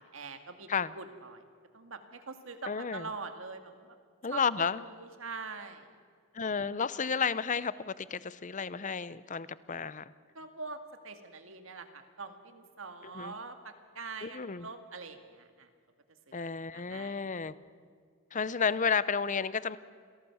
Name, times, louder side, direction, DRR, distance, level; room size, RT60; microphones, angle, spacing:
voice 1, 0.0-1.4 1.7-4.0 4.3-5.9 10.3-15.7 16.3-16.4 16.7-17.2, right 4 dB, 65° right, 7 dB, 2.0 m, -44 dB
voice 2, 2.6-3.1 4.2-4.8 6.3-10.1 13.0-13.4 14.2-14.7 16.3-17.5 18.3-19.8, left 6 dB, 35° left, 17 dB, 0.7 m, -32 dB
27.5 x 17.5 x 7.2 m, 2.1 s
head